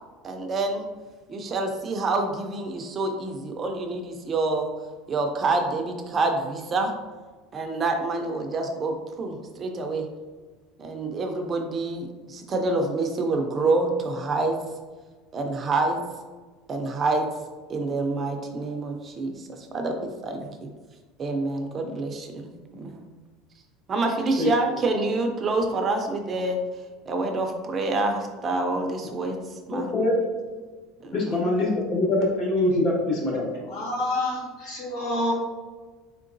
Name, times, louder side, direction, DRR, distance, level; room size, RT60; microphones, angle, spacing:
voice 1, 0.2-0.8 1.3-4.7 5.1-6.9 7.5-10.1 10.8-14.6 15.3-16.0 16.7-17.3 17.7-20.7 21.2-23.0 23.9-26.6 27.1-29.9 31.0-31.4, right 3 dB, 25° right, 4 dB, 0.4 m, -27 dB
voice 2, 29.7-30.2 31.1-33.5, left 2 dB, 40° left, -2 dB, 1.2 m, -24 dB
voice 3, 33.7-35.3, left 1 dB, 80° left, -4 dB, 1.5 m, -28 dB
4.3 x 3.8 x 2.5 m, 1.4 s
cardioid pair, 155°, 0 cm